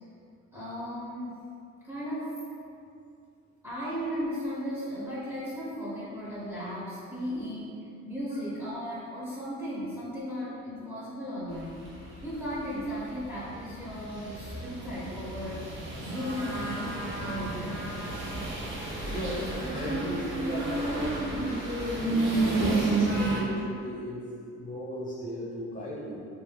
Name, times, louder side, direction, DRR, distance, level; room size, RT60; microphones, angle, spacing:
voice 1, 0.5-1.4 1.8-2.3 3.6-15.7 16.0-17.9, equal, 10° right, -10 dB, 0.8 m, -36 dB
sound 1, 11.5-23.4, right 2 dB, 40° right, 0.7 m, -31 dB
voice 2, 18.6-21.4 22.0-26.3, equal, 25° left, -7 dB, 0.9 m, -37 dB
2.5 x 2.4 x 3.2 m, 2.5 s
cardioid pair, 90°, 30 cm